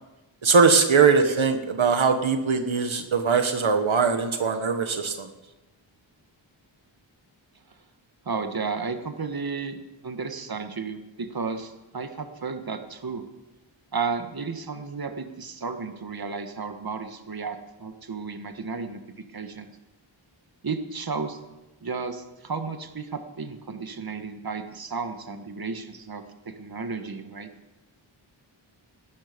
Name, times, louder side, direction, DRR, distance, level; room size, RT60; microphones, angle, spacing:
voice 1, 0.4-5.3, right 5 dB, 75° right, 7 dB, 1.3 m, -21 dB
voice 2, 8.2-9.8 10.0-13.2 13.9-19.7 20.6-21.4 21.8-27.5, right 4 dB, 50° right, 7 dB, 1.5 m, -33 dB
18.0 x 13.0 x 5.2 m, 1.1 s
wide cardioid pair, 75°, 47 cm